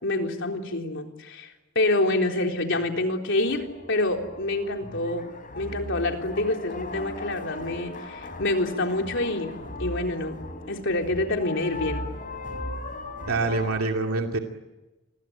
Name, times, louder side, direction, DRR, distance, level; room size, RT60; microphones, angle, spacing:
voice 1, 0.0-1.5 1.8-5.3 5.6-9.5 9.8-10.4 10.7-12.1, left 2 dB, 60° left, 3 dB, 3.8 m, -27 dB
sound 1, 2.4-13.8, left 2 dB, 40° left, 4.1 m, -38 dB
voice 2, 13.3-14.4, right 3 dB, 90° right, 3 dB, 2.5 m, -25 dB
28.5 x 22.0 x 8.9 m, 1.1 s
head